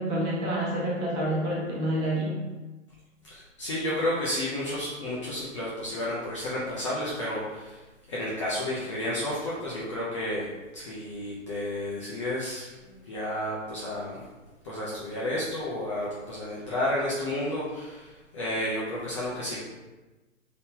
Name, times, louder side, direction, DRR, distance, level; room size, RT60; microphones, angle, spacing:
voice 1, 0.0-2.4, right 1 dB, 35° right, -5 dB, 1.2 m, -28 dB
voice 2, 3.3-7.8 8.1-10.5 10.7-14.2 14.6-19.6, left 1 dB, 25° left, -7 dB, 0.4 m, -31 dB
2.8 x 2.6 x 3.5 m, 1.2 s
hypercardioid pair, 130°, 39 cm